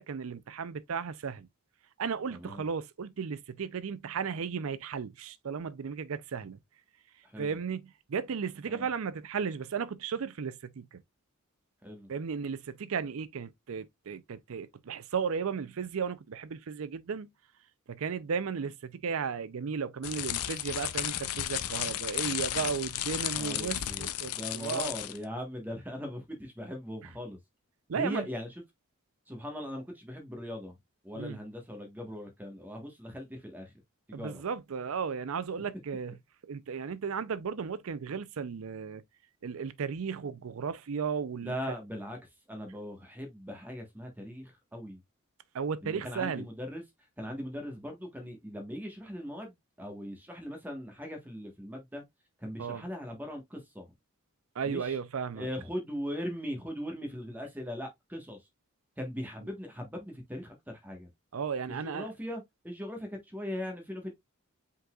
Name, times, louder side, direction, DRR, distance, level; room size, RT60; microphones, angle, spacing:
voice 1, 0.0-1.5 2.0-6.6 7.4-11.0 12.1-17.3 17.9-24.9 27.9-28.3 31.2-31.4 34.1-36.1 36.4-39.0 39.4-41.5 45.5-46.5 52.6-52.8 54.6-55.5 61.3-62.1, right 6 dB, 70° right, 0.5 m, -35 dB
voice 2, 2.3-2.6 7.2-7.6 8.7-8.8 11.8-12.1 23.3-27.4 27.9-28.5 29.3-30.7 31.0-33.7 34.1-34.4 41.4-42.2 42.5-45.0 45.8-46.8 47.2-52.0 52.4-53.8 54.6-55.0 55.3-58.4 59.0-61.1 61.7-64.1, equal, 10° right, 1.2 m, -39 dB
sound 1, 20.0-25.2, left 12 dB, 90° left, 0.5 m, -34 dB
5.3 x 3.9 x 2.3 m
head